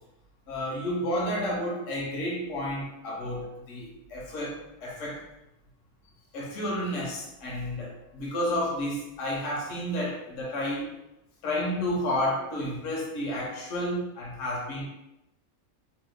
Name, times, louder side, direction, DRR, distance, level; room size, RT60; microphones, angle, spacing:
voice 1, 0.5-5.2 6.3-10.9 11.4-14.9, left 1 dB, 65° left, -3 dB, 1.1 m, -31 dB
2.9 x 2.1 x 3.5 m, 0.92 s
omnidirectional pair, 1.5 m